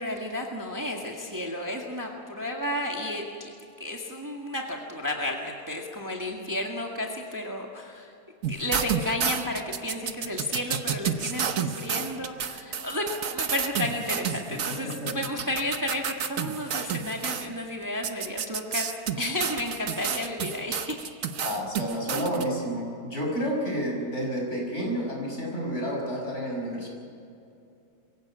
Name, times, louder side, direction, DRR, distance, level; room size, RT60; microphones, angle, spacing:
voice 1, 0.0-3.5 3.8-8.1 8.5-13.1 13.3-21.1, left 1 dB, 10° right, 0 dB, 1.8 m, -32 dB
sound 1, 8.4-17.5 18.0-22.4, right 7 dB, 60° right, 1.3 m, -30 dB
voice 2, 21.4-26.9, equal, 45° left, -1 dB, 6.0 m, -30 dB
23.0 x 16.0 x 8.7 m, 2.6 s
omnidirectional pair, 1.7 m